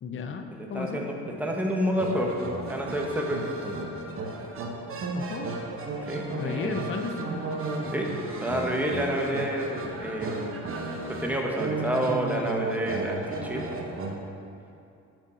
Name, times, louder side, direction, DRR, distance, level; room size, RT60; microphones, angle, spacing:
voice 1, 0.0-1.0 5.1-5.5 6.4-7.3, left 5 dB, 40° left, 6 dB, 0.6 m, -34 dB
voice 2, 0.5-3.8 6.1-6.8 7.9-10.7 11.1-13.6, equal, 5° right, 0 dB, 0.9 m, -29 dB
sound 1, 2.0-14.1, right 3 dB, 45° right, 0.9 m, -34 dB
6.2 x 5.1 x 4.3 m, 2.6 s
cardioid pair, 90°, 30 cm